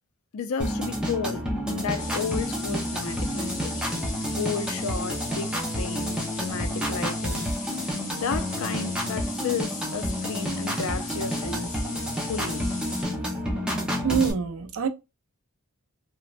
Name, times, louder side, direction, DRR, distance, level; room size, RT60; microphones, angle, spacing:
voice 1, 0.3-3.7 4.3-7.5 7.9-12.7, left 5 dB, 70° left, 0.4 m, -33 dB
sound 1, 0.6-14.3, equal, 5° right, 0.6 m, -30 dB
sound 2, 2.0-13.0, left 3 dB, 35° left, 0.7 m, -38 dB
voice 2, 14.0-14.9, right 6 dB, 65° right, 0.4 m, -25 dB
3.0 x 2.1 x 2.4 m
head